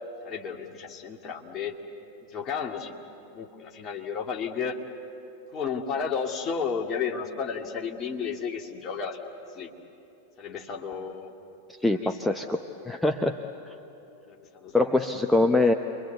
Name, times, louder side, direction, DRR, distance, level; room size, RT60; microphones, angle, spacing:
voice 1, 0.2-1.8 2.2-3.0 3.3-4.8 5.5-9.2 9.5-9.7 10.4-11.3 11.9-12.2 14.3-15.0, left 6 dB, 30° left, 1 dB, 2.2 m, -33 dB
voice 2, 11.8-12.6 12.8-13.4 14.7-15.7, left 2 dB, 5° left, 4 dB, 0.8 m, -23 dB
29.5 x 23.5 x 8.3 m, 2.9 s
figure-of-eight pair, 90°, 0 cm